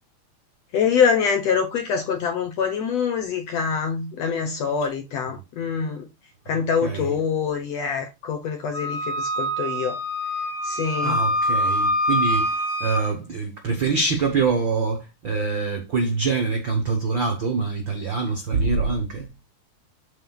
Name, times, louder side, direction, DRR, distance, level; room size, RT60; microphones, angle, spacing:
voice 1, 0.7-6.1 6.5-10.0 10.6-11.2, left 6 dB, 70° left, 1.6 m, -25 dB
voice 2, 6.8-7.1 11.0-19.3, right 4 dB, 85° right, 1.0 m, -25 dB
Wind instrument woodwind instrument, 8.7-13.1, equal, 40° left, 2.8 m, -25 dB
12.0 x 4.4 x 2.3 m
omnidirectional pair, 4.0 m